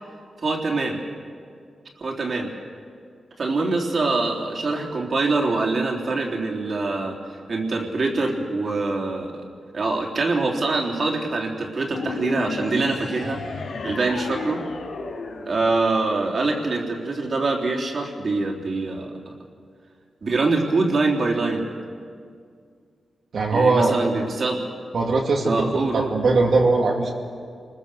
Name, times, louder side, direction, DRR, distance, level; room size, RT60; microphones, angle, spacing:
voice 1, 0.4-1.0 2.0-2.5 3.4-7.2 7.5-9.4 9.7-13.4 13.8-14.6 15.4-19.1 20.2-21.7 23.5-24.6 25.4-26.1, right 3 dB, 50° right, 0 dB, 3.5 m, -24 dB
sound 1, 11.9-16.4, left 3 dB, 85° left, 3.3 m, -33 dB
voice 2, 23.3-23.9 24.9-27.1, right 3 dB, 65° right, -1 dB, 2.5 m, -20 dB
28.5 x 21.0 x 6.9 m, 2.2 s
wide cardioid pair, 140°, 0 cm